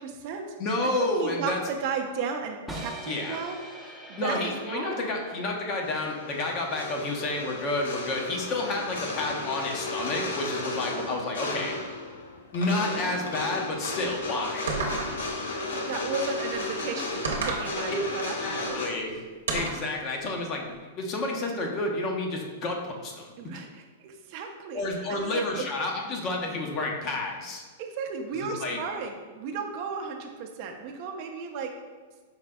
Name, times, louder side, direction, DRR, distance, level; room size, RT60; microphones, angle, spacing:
voice 1, 0.0-0.6 0.8-0.9 1.2-5.1 10.9-11.1 15.9-18.8 23.4-24.8 25.1-25.6 27.8-31.7, right 5 dB, 50° right, 3 dB, 0.5 m, -35 dB
voice 2, 0.6-1.6 3.1-3.4 4.2-11.8 12.5-14.6 17.9-18.0 18.4-19.1 19.5-23.6 24.7-27.6 28.3-28.8, left 2 dB, 40° left, 1 dB, 0.7 m, -30 dB
sound 1, 2.7-8.7, right 2 dB, ahead, 0.6 m, -44 dB
Drums of Xian China, 5.8-18.9, left 2 dB, 80° left, 0.6 m, -34 dB
sound 2, 14.7-15.4 17.2-17.7 19.5-19.9, right 3 dB, 85° right, 0.7 m, -30 dB
5.0 x 3.2 x 2.2 m, 1.4 s
hypercardioid pair, 115°, 0 cm